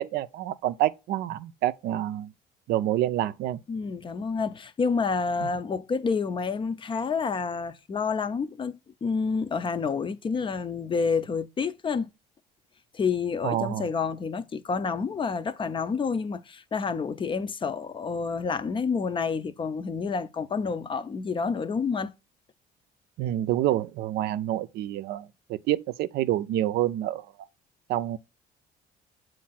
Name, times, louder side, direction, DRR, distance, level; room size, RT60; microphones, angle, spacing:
voice 1, 0.0-2.3 2.7-3.6 5.4-5.5 13.4-13.9 23.2-27.3 27.9-28.2, right 13 dB, 75° right, 0.4 m, -27 dB
voice 2, 3.7-12.1 12.9-22.1, left 5 dB, 30° left, 0.5 m, -29 dB
7.4 x 2.6 x 5.6 m
cardioid pair, 110°, 17 cm